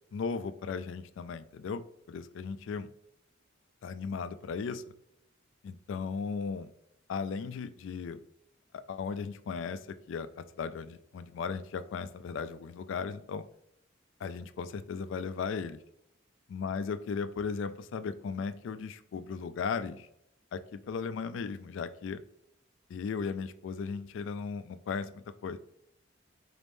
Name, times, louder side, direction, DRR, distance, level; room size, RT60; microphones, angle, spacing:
voice 1, 0.1-2.9 3.8-4.8 5.6-6.7 7.1-8.2 8.7-13.4 14.2-15.8 16.5-20.1 20.5-22.2 22.9-25.6, left 5 dB, 70° left, 12 dB, 0.3 m, -36 dB
4.2 x 3.4 x 2.6 m, 0.76 s
head